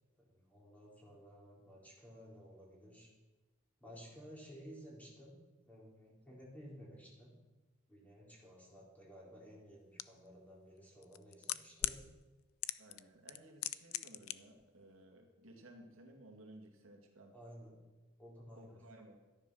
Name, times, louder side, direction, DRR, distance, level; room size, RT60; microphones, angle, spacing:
voice 1, 0.2-3.1 3.8-5.3 5.7-7.3 7.9-12.0 17.3-17.7 18.2-18.8, equal, 10° left, -3 dB, 3.9 m, -55 dB
sound 1, 10.0-10.1 11.0-12.0 12.6-13.0 13.3-14.3 14.6-14.7, left 14 dB, 85° left, 0.5 m, -37 dB
voice 2, 12.8-17.3 18.6-19.2, right 1 dB, 75° right, 2 dB, 2.3 m, -57 dB
13.0 x 10.5 x 6.4 m, 1.2 s
head